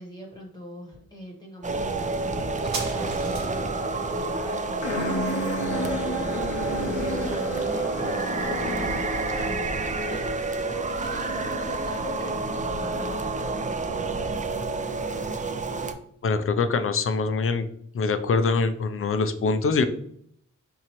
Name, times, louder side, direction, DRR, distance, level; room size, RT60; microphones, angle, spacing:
voice 1, 0.0-9.1 9.3-13.6, equal, 15° left, -2 dB, 1.0 m, -40 dB
sound 1, 1.6-15.9, right 3 dB, 25° right, 0.4 m, -29 dB
sound 2, 2.5-9.6 9.9-10.0, right 3 dB, 65° right, 1.1 m, -43 dB
sound 3, 4.8-9.7, left 2 dB, 75° left, 0.7 m, -33 dB
voice 2, 16.2-17.7 17.9-19.8, left 4 dB, 45° left, 9 dB, 0.5 m, -24 dB
4.4 x 3.8 x 2.9 m, 0.66 s
wide cardioid pair, 125°, 31 cm